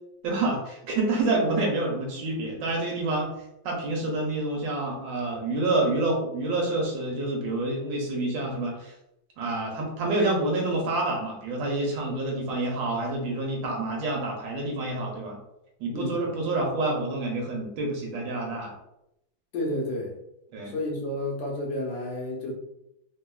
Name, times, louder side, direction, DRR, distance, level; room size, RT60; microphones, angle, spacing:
voice 1, 0.2-3.3 3.6-8.9 9.4-15.4 15.8-18.7 20.5-20.7, right 2 dB, 75° right, -1 dB, 1.3 m, -28 dB
voice 2, 15.9-16.3 19.5-20.1 20.7-22.5, left 1 dB, 75° left, 0 dB, 1.4 m, -31 dB
3.4 x 2.2 x 2.3 m, 0.84 s
omnidirectional pair, 2.2 m